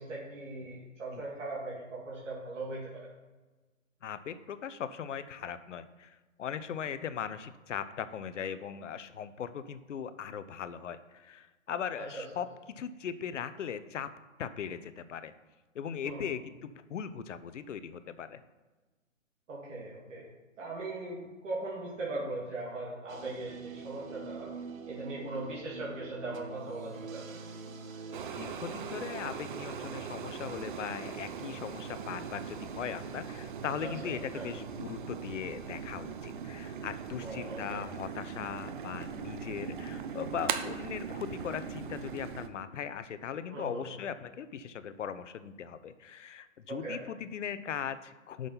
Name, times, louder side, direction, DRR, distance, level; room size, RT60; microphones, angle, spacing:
voice 1, 0.0-3.1 12.1-12.2 16.0-16.4 19.5-20.3 20.6-24.5 24.9-27.2 34.0-34.5 37.2-37.8 43.5-44.0 46.7-47.0, right 2 dB, 65° right, -6 dB, 2.5 m, -39 dB
voice 2, 4.0-14.1 14.4-15.3 15.7-18.4 28.4-48.5, left 8 dB, 65° left, 13 dB, 0.6 m, -39 dB
sound 1, 23.1-28.3, right 5 dB, 85° right, 1.2 m, -44 dB
sound 2, 28.1-42.5, right 6 dB, 40° right, 0.6 m, -40 dB
6.3 x 5.3 x 5.6 m, 1.2 s
hypercardioid pair, 150°, 40 cm